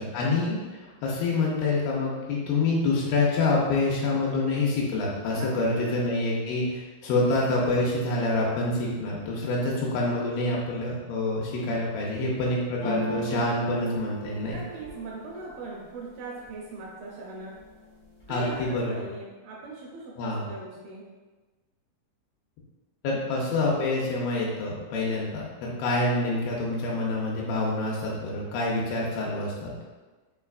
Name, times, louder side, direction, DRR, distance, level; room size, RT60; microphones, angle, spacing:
voice 1, 0.0-14.6 18.3-18.9 20.2-20.5 23.0-25.5 25.8-29.7, left 2 dB, 85° left, -4 dB, 2.4 m, -27 dB
voice 2, 5.3-5.8 14.5-17.5 18.3-21.1 25.6-25.8, right 3 dB, 80° right, -3 dB, 2.2 m, -40 dB
sound 1, 12.8-16.7 17.1-17.7 18.0-18.8, equal, 65° left, 1.0 m, -37 dB
5.7 x 3.2 x 2.3 m, 1.3 s
omnidirectional pair, 4.5 m